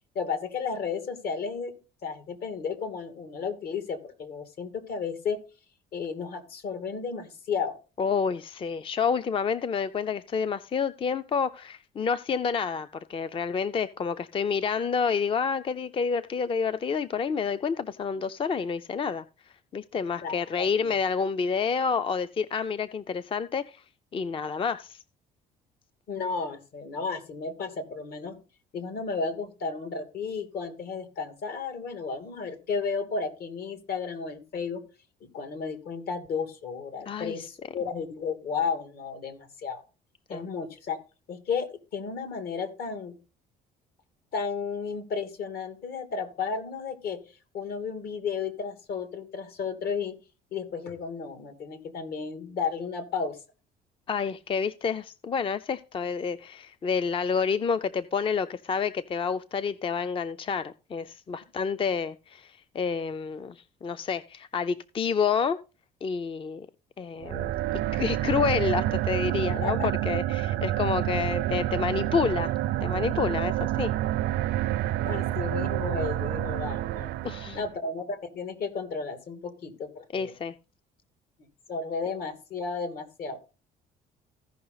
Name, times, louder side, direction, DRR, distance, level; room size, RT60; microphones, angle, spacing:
voice 1, 0.1-1.7 2.0-5.4 5.9-7.8 20.2-20.4 20.8-20.9 26.1-28.4 28.7-34.8 35.2-39.8 40.3-41.0 41.3-43.2 44.3-47.2 47.5-50.1 50.5-53.4 69.6-69.9 74.8-77.1 77.5-80.3 81.7-83.4, left 5 dB, 65° left, 7 dB, 2.7 m, -33 dB
voice 2, 8.0-19.2 19.7-23.8 24.1-25.0 37.1-37.5 40.3-40.5 54.1-65.6 66.0-66.7 67.0-72.5 72.8-73.9 77.2-77.6 80.1-80.5, left 6 dB, 30° left, 13 dB, 0.5 m, -29 dB
sound 1, 67.2-77.7, right 14 dB, 80° right, 0.5 m, -28 dB
15.5 x 5.6 x 4.0 m, 0.32 s
cardioid pair, 110°, 17 cm